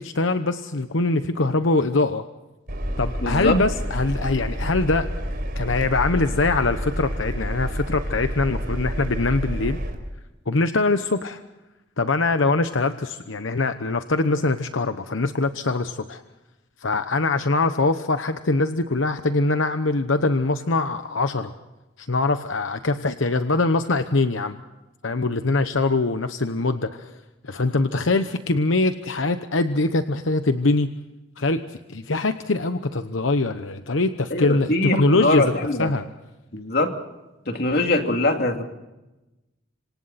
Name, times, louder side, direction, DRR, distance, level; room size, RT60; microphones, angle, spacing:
voice 1, 0.0-2.2 3.0-5.1 5.6-9.8 10.5-11.4 12.0-16.2 16.8-21.5 22.0-24.6 25.0-31.0 31.4-35.5 35.8-36.1, left 3 dB, 85° left, 9 dB, 1.0 m, -23 dB
Engine, 2.7-10.0, equal, 55° right, 4.7 m, -29 dB
voice 2, 3.2-3.6 34.3-35.9 36.5-36.9 37.5-38.6, left 2 dB, 55° left, 4 dB, 2.7 m, -22 dB
27.0 x 26.0 x 4.2 m, 1.0 s
head